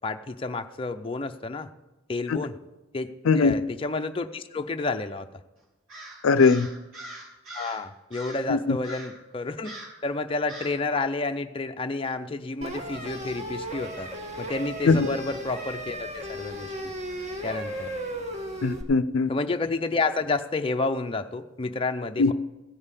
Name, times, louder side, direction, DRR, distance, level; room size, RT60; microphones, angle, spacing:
voice 1, 0.0-1.7 2.1-2.6 2.9-5.3 7.5-9.7 10.0-14.1 14.4-16.7 17.4-17.9 19.3-22.3, left 3 dB, 25° left, 6 dB, 0.5 m, -30 dB
Crow, 5.9-7.8 8.1-8.5 8.8-9.2 9.6-10.0 10.5-10.8, right 1 dB, 80° right, 3.1 m, -42 dB
voice 2, 6.2-6.7 8.5-8.8 14.9-15.1 18.6-19.3 22.2-22.3, left 4 dB, 80° left, 15 dB, 0.5 m, -20 dB
sound 1, 12.6-18.8, equal, 30° right, 1.3 m, -35 dB
15.5 x 5.5 x 8.2 m, 1.1 s
head